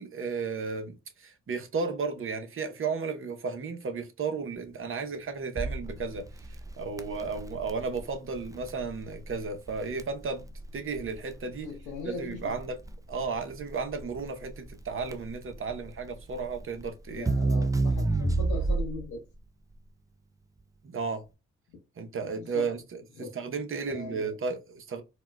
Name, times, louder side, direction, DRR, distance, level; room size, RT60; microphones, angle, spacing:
voice 1, 0.0-10.5 10.7-11.7 12.0-12.8 13.1-17.3 20.8-21.2 22.0-25.0, right 4 dB, 40° right, 0.8 m, -34 dB
Crackle, 5.6-19.1, right 3 dB, 10° right, 0.4 m, -31 dB
voice 2, 11.6-12.6 17.1-19.2 22.5-22.6 23.2-23.3 23.9-24.3, left 4 dB, 85° left, 0.9 m, -39 dB
4.2 x 2.2 x 2.2 m
supercardioid pair, 50°, 32 cm